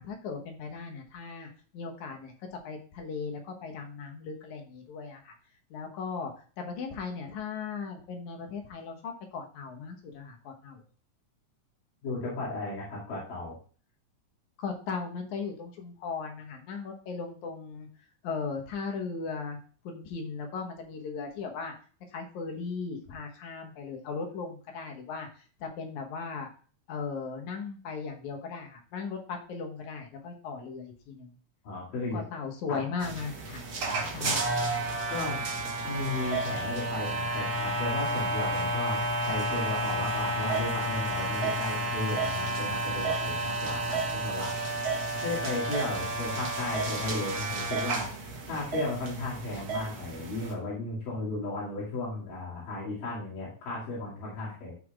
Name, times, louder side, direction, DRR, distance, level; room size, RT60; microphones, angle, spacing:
voice 1, 0.0-5.3 5.7-10.8 14.6-17.9 18.2-19.6 19.8-21.7 22.1-26.5 26.9-31.4 32.1-33.6 34.1-34.5, left 5 dB, 70° left, 3 dB, 2.5 m, -37 dB
voice 2, 12.0-13.6 31.6-32.2 32.7-33.1 34.2-34.5 35.1-35.5 35.8-39.0 39.3-44.5 45.2-48.1 48.5-54.7, left 2 dB, 85° left, -7 dB, 4.0 m, -35 dB
sound 1, 33.0-50.5, right 2 dB, 65° right, 0.9 m, -31 dB
14.0 x 5.6 x 2.4 m, 0.40 s
omnidirectional pair, 3.7 m